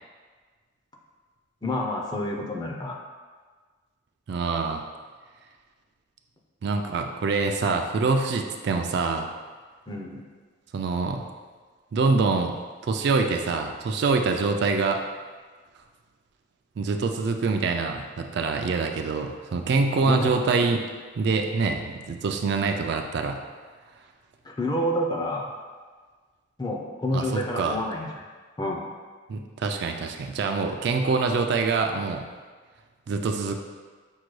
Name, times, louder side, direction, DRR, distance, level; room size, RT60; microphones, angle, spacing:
voice 1, 1.6-3.0 9.9-10.2 20.0-20.4 24.4-25.5 26.6-28.2 28.6-28.9, left 1 dB, 20° left, 0 dB, 0.4 m, -28 dB
voice 2, 4.3-4.8 6.6-9.3 10.7-11.2 11.9-15.0 16.8-20.8 21.2-23.4 27.1-27.8 29.3-32.3 33.1-33.6, right 4 dB, 55° right, 4 dB, 0.3 m, -25 dB
6.2 x 2.2 x 3.1 m, 1.5 s
head